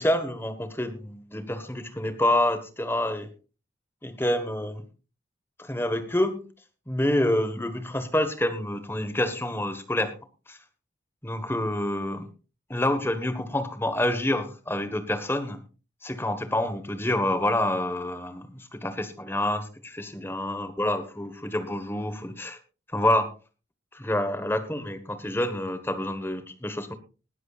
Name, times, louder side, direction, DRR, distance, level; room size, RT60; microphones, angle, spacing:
voice 1, 0.0-3.3 4.0-4.8 5.6-6.5 6.9-10.1 10.5-10.6 11.2-12.3 12.7-15.6 16.0-22.6 22.9-23.3 23.9-26.9, left 1 dB, 10° left, 10 dB, 1.3 m, -27 dB
20.0 x 12.5 x 2.4 m, 0.33 s
head